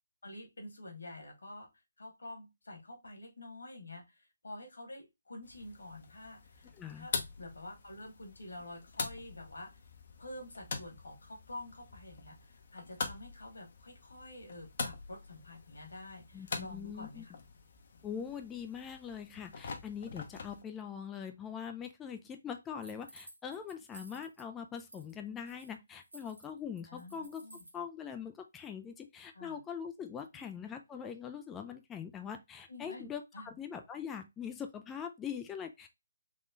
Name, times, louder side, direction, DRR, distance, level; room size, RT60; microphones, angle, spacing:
voice 1, 0.2-1.7 2.0-6.7 7.0-7.1 7.4-9.7 10.2-17.3 26.9-27.6 29.3-29.6 30.3-30.4 32.7-33.1 33.3-33.5, left 1 dB, 70° left, 1.7 m, -48 dB
sound 1, 5.4-20.6, left 4 dB, 45° left, 0.7 m, -44 dB
voice 2, 6.7-7.1 16.3-17.2 18.0-27.4 27.7-35.9, left 7 dB, 10° left, 0.3 m, -42 dB
sound 2, 22.8-24.4 24.8-25.1 25.4-27.8, right 1 dB, 80° right, 1.2 m, -55 dB
3.6 x 3.0 x 2.5 m
figure-of-eight pair, 145°, 0 cm